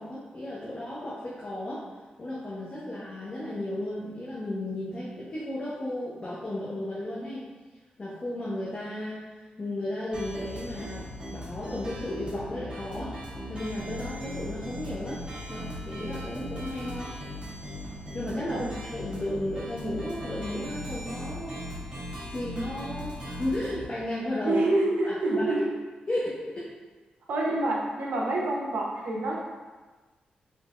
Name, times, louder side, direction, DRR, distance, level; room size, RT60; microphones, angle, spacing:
voice 1, 0.0-1.9 2.2-7.5 8.0-9.3 9.6-13.2 13.5-15.2 15.5-17.2 18.1-18.6 18.9-21.6 22.3-24.6 25.0-25.5 26.1-26.7, left 1 dB, 35° left, -7 dB, 0.7 m, -34 dB
sound 1, 10.1-23.9, equal, 35° right, 1.3 m, -38 dB
voice 2, 24.4-25.7 27.3-29.4, right 2 dB, 75° right, -3 dB, 0.8 m, -27 dB
3.6 x 3.3 x 2.5 m, 1.3 s
cardioid pair, 85°, 3 cm